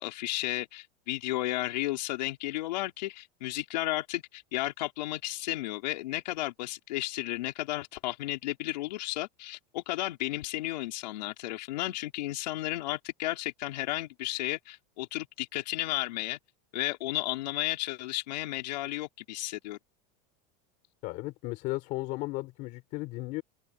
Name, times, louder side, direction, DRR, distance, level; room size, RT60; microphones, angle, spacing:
voice 1, 0.0-16.4 16.7-19.8, left 17 dB, 90° left, 4.9 m, -33 dB
voice 2, 21.0-23.4, left 21 dB, 40° left, 5.2 m, -35 dB
supercardioid pair, 180°, 21 cm